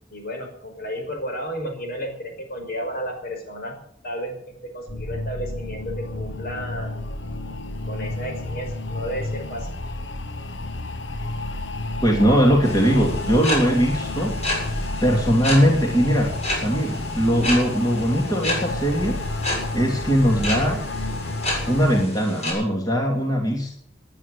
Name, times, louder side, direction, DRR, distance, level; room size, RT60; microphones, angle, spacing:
voice 1, 0.1-3.8 4.0-7.0 7.9-9.7, equal, 55° left, 4 dB, 5.3 m, -32 dB
sound 1, 4.9-22.0, left 2 dB, 85° left, 1.2 m, -31 dB
voice 2, 12.0-14.4 15.0-19.5 19.7-20.8 21.7-23.7, equal, 20° left, 0 dB, 2.9 m, -20 dB
sound 2, 12.6-22.5, left 1 dB, 40° left, 7.6 m, -31 dB
20.0 x 10.5 x 6.7 m, 0.65 s
head